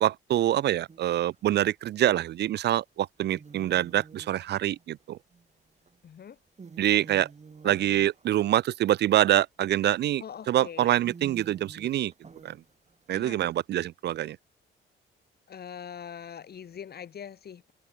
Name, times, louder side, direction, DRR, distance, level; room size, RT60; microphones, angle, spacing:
voice 1, 0.0-5.2 6.8-7.3 7.6-12.1 12.4-12.6 13.1-14.4, right 13 dB, 60° right, 0.4 m, -25 dB
sound 1, 0.9-1.4 2.6-2.7 3.2-6.0 6.4-9.3 10.0-10.2 10.6-10.7 11.0-13.2, right 5 dB, 35° right, 4.8 m, -49 dB
voice 2, 6.0-6.4 7.6-7.8 10.2-11.0 13.1-13.4 15.5-17.7, left 8 dB, 55° left, 2.6 m, -42 dB
open air
cardioid pair, 90°, 20 cm